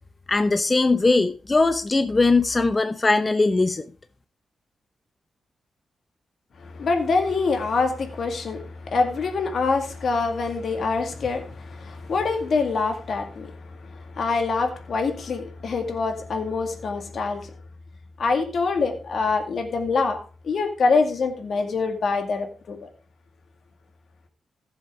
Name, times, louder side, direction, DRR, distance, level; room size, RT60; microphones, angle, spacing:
voice 1, 0.3-3.8, left 3 dB, 30° left, 0.7 m, -20 dB
voice 2, 6.6-17.5 18.2-20.2 20.4-22.9, left 4 dB, 65° left, 2.0 m, -25 dB
15.0 x 7.3 x 3.7 m
cardioid pair, 85°, 0 cm